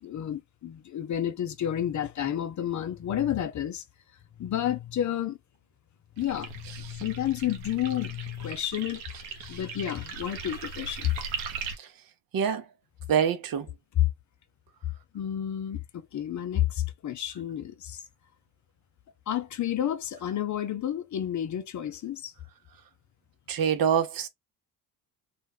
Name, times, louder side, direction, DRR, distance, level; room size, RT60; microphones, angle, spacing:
voice 1, 0.0-3.8 4.4-5.4 6.2-11.1 13.9-14.1 15.1-18.0 19.3-22.3, left 11 dB, 40° left, 0.6 m, -30 dB
sound 1, 6.2-11.8, right 5 dB, 85° right, 0.7 m, -39 dB
voice 2, 13.1-13.7 23.5-24.3, right 8 dB, 45° right, 0.7 m, -25 dB
2.3 x 2.1 x 3.4 m
hypercardioid pair, 50°, 48 cm